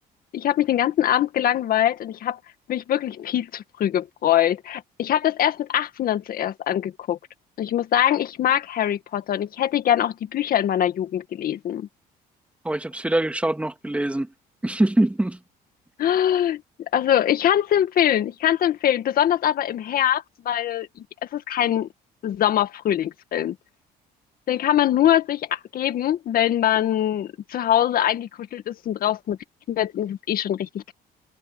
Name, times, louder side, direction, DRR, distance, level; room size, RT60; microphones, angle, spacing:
voice 1, 0.3-2.4 2.7-7.2 7.6-11.9 16.0-16.6 16.9-20.9 21.3-21.9 22.2-23.6 24.5-29.4 29.7-30.9, left 11 dB, 60° left, 2.0 m, -23 dB
voice 2, 12.6-14.3 14.6-15.4, right 1 dB, 5° right, 2.1 m, -23 dB
cardioid pair, 110°, 17 cm